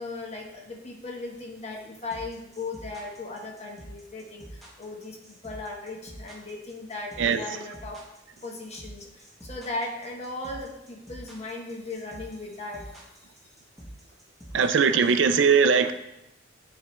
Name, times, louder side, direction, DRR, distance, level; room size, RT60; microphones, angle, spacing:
voice 1, 0.0-8.0 8.4-13.0, left 2 dB, 35° left, 0 dB, 1.0 m, -37 dB
sound 1, 2.1-15.3, right 1 dB, ahead, 1.1 m, -46 dB
voice 2, 14.5-15.9, right 6 dB, 75° right, 10 dB, 0.4 m, -20 dB
9.6 x 3.4 x 3.1 m, 0.89 s
head